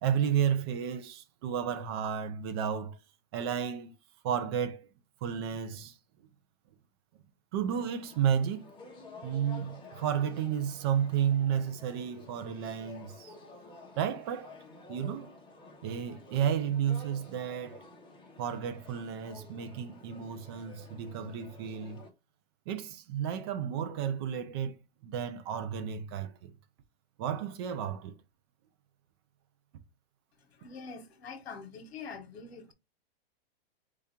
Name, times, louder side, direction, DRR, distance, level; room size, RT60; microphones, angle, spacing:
voice 1, 0.0-3.0 3.3-3.9 4.2-4.8 5.2-5.9 7.5-8.7 9.2-13.3 14.0-14.5 14.9-15.3 15.8-17.8 18.4-22.0 22.7-24.8 25.0-26.5 27.2-28.2, right 8 dB, 25° right, 0.4 m, -32 dB
Peaceful Protest in Old town of Düsseldorf, 7.7-22.1, left 3 dB, 15° left, 1.2 m, -52 dB
voice 2, 30.4-32.7, left 5 dB, 85° left, 1.3 m, -45 dB
4.7 x 2.8 x 3.6 m
hypercardioid pair, 160°, 31 cm